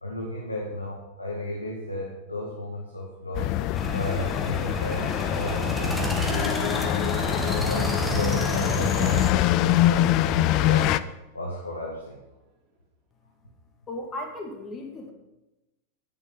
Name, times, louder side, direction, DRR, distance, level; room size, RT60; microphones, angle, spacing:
voice 1, 0.0-3.5 3.9-11.0 11.3-12.2, left 1 dB, 85° left, -2 dB, 1.9 m, -34 dB
Accelerating revving vroom, 3.1-3.3 3.6-11.1 11.4-12.1, right 4 dB, 30° right, 3.2 m, -44 dB
sound 1, 3.3-11.0, left 15 dB, 40° left, 0.4 m, -24 dB
sound 2, 3.8-9.3, equal, 5° left, 1.6 m, -30 dB
voice 2, 13.9-15.1, left 1 dB, 20° left, 2 dB, 2.4 m, -36 dB
10.0 x 9.9 x 5.8 m, 0.99 s
figure-of-eight pair, 90°, 0 cm